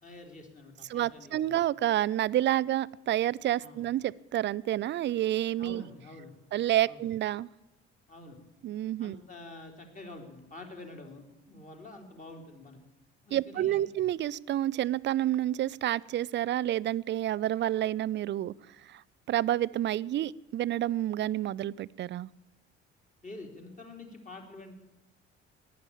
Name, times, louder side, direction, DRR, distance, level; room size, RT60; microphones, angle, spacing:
voice 1, 0.0-1.5 3.6-3.8 5.6-6.3 6.9-7.0 8.1-8.4 9.0-12.8 13.3-13.9 23.2-24.7, left 2 dB, 25° left, 3 dB, 3.6 m, -47 dB
voice 2, 0.9-5.8 6.5-7.5 8.6-9.2 13.3-18.5 18.9-19.0 19.3-22.3, right 13 dB, 35° right, 22 dB, 0.5 m, -29 dB
15.0 x 10.5 x 8.6 m, 1.0 s
figure-of-eight pair, 50°, 34 cm